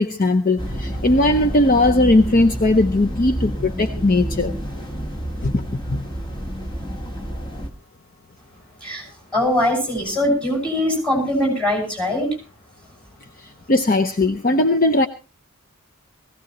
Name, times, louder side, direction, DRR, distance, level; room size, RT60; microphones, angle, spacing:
voice 1, 0.0-4.5 5.4-6.0 13.7-15.1, left 2 dB, 40° left, 0.7 m, -18 dB
sound 1, 0.6-7.7, equal, 20° left, 1.4 m, -29 dB
voice 2, 8.8-12.3, left 1 dB, 5° left, 6.3 m, -22 dB
20.0 x 16.0 x 3.0 m
head